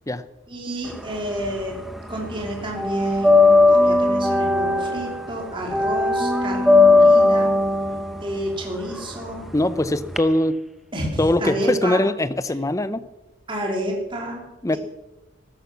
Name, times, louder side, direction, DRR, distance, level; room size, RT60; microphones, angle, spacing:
voice 1, 0.5-1.8 2.1-7.5 8.2-9.5 10.9-12.0 13.5-14.4, right 1 dB, 25° right, -1 dB, 3.4 m, -29 dB
sound 1, 0.9-2.0 2.3-10.2, left 2 dB, ahead, 1.0 m, -18 dB
voice 2, 9.5-10.6 11.2-13.0 14.6-14.8, left 1 dB, 15° left, 14 dB, 0.6 m, -21 dB
14.0 x 13.5 x 6.2 m, 1.0 s
head